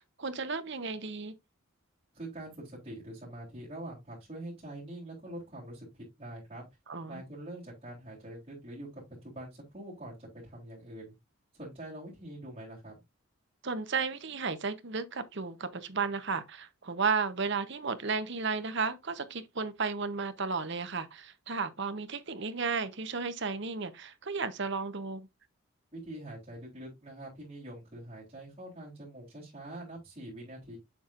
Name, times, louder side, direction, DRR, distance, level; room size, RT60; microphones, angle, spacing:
voice 1, 0.0-1.3 6.9-7.2 13.6-25.3, right 4 dB, 55° right, 0.9 m, -33 dB
voice 2, 2.1-5.9 6.2-6.6 7.1-11.1 11.5-13.0 25.9-30.8, right 1 dB, 25° right, 3.5 m, -44 dB
7.4 x 7.0 x 2.5 m
head